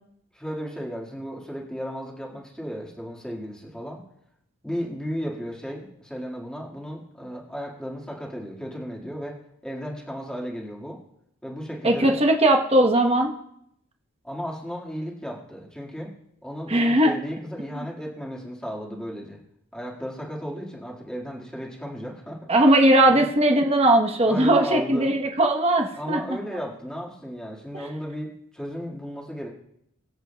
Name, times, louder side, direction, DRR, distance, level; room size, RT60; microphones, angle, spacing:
voice 1, 0.3-4.0 4.6-11.0 11.4-12.2 14.2-16.1 16.4-19.4 19.7-22.4 23.1-23.3 24.2-25.1 26.0-29.5, equal, 5° left, -3 dB, 1.8 m, -34 dB
voice 2, 11.8-13.3 16.7-17.1 22.5-26.2 27.7-27.9, right 1 dB, 30° right, 3 dB, 1.0 m, -19 dB
23.0 x 7.9 x 2.2 m, 0.75 s
head